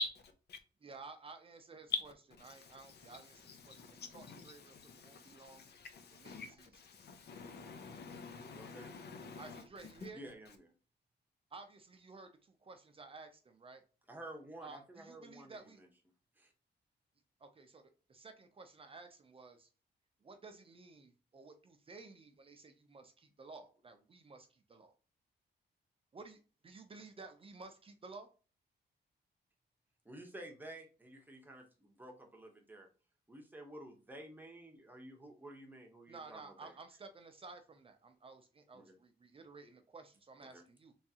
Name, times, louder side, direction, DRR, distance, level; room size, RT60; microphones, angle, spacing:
voice 1, 0.8-2.1 2.4-5.7 6.1-6.8 9.4-10.2 11.5-13.8 14.6-15.8 17.4-17.8 18.1-19.7 20.2-24.9 26.1-28.3 36.1-40.9, right 3 dB, 30° right, 0.5 m, -54 dB
voice 2, 3.7-9.6, left 4 dB, 65° left, 0.7 m, -51 dB
voice 3, 8.5-8.9 10.1-10.7 14.1-15.9 16.4-16.5 30.0-32.9 33.3-36.8 38.7-38.9 40.4-40.6, right 1 dB, 10° right, 0.9 m, -52 dB
3.6 x 3.1 x 2.8 m
wide cardioid pair, 135°, 18 cm